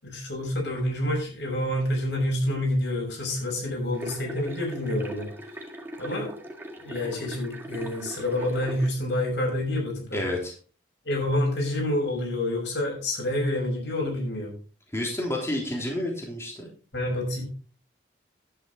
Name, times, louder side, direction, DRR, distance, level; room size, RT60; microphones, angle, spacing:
voice 1, 0.0-5.3 6.0-6.4 6.8-10.2 11.0-14.5 16.9-17.4, left 1 dB, 80° left, 0 dB, 6.1 m, -28 dB
sound 1, 3.9-8.9, right 1 dB, 10° right, 1.8 m, -40 dB
voice 2, 10.1-10.5 14.9-16.7, left 1 dB, 15° left, -2 dB, 3.4 m, -30 dB
11.0 x 9.2 x 4.0 m, 0.38 s
head